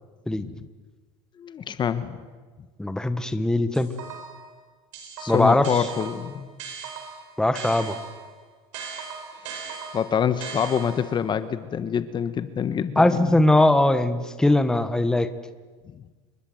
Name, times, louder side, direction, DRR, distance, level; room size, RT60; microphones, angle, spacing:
voice 1, 1.4-2.2 5.2-6.5 9.9-13.4, left 8 dB, 30° left, 12 dB, 1.4 m, -26 dB
voice 2, 2.8-3.9 5.3-5.7 7.4-8.0 13.0-15.3, left 1 dB, 5° left, 10 dB, 1.5 m, -20 dB
sound 1, 3.7-4.5 4.9-8.3 8.7-11.2, right 6 dB, 80° right, 7.8 m, -38 dB
28.5 x 22.5 x 8.0 m, 1.4 s
supercardioid pair, 115°, 15 cm